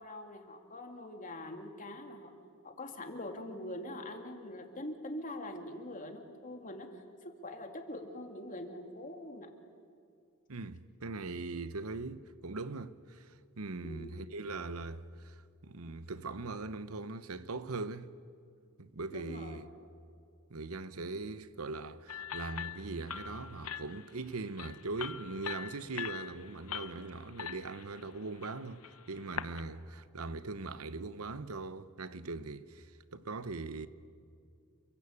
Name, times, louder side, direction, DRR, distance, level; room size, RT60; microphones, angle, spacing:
voice 1, 0.0-2.3 2.6-9.5 13.8-14.1 19.1-19.6, left 1 dB, 35° left, 2.7 m, -44 dB
voice 2, 10.5-18.1 18.8-19.7 20.5-33.9, right 3 dB, 80° right, 0.9 m, -41 dB
sound 1, 22.1-29.6, left 8 dB, 75° left, 0.9 m, -43 dB
30.0 x 23.0 x 8.4 m
head